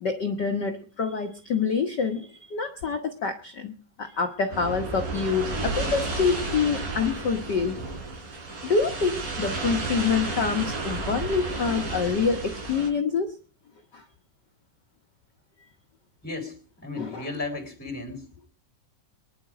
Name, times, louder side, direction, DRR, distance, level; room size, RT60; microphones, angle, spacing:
voice 1, 0.0-3.7 4.0-7.8 8.6-13.4 13.9-14.0 17.0-17.3, left 5 dB, 80° left, 5 dB, 0.9 m, -26 dB
sound 1, 4.5-12.9, right 3 dB, 85° right, 5.9 m, -32 dB
voice 2, 16.2-16.6 16.8-18.2, left 3 dB, 5° left, -4 dB, 3.6 m, -34 dB
23.0 x 11.0 x 5.0 m, 0.41 s
omnidirectional pair, 3.8 m